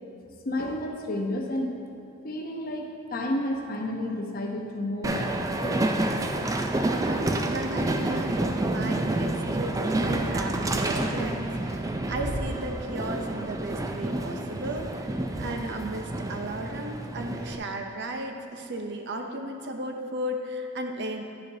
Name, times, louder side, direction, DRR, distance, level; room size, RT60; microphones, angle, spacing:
voice 1, 0.4-1.8 2.2-5.8, left 1 dB, 45° left, 1 dB, 0.7 m, -31 dB
Train, 5.0-17.6, right 1 dB, 15° right, 0.3 m, -29 dB
voice 2, 7.0-21.2, right 1 dB, 55° right, 4 dB, 0.6 m, -35 dB
10.0 x 6.7 x 2.7 m, 2.6 s
head